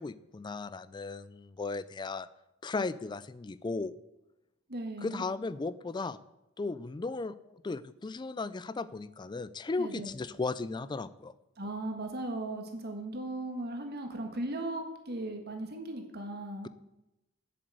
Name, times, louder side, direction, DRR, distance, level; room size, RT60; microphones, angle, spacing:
voice 1, 0.0-2.3 2.6-3.9 5.0-6.2 6.6-11.3, left 3 dB, 20° left, 17 dB, 0.3 m, -36 dB
voice 2, 4.7-5.2 9.8-10.1 11.6-16.7, right 2 dB, 50° right, 4 dB, 1.6 m, -37 dB
7.8 x 7.7 x 7.9 m, 0.93 s
head